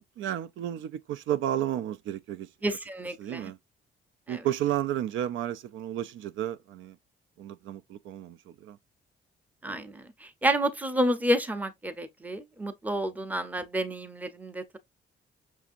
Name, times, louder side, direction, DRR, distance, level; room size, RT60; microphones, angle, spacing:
voice 1, 0.0-2.5 3.2-3.6 4.3-7.0 7.4-8.8, right 11 dB, 80° right, 0.4 m, -32 dB
voice 2, 2.6-3.5 4.3-4.4 9.6-14.8, right 1 dB, 10° right, 0.6 m, -30 dB
6.0 x 2.7 x 2.4 m
cardioid pair, 135°, 20 cm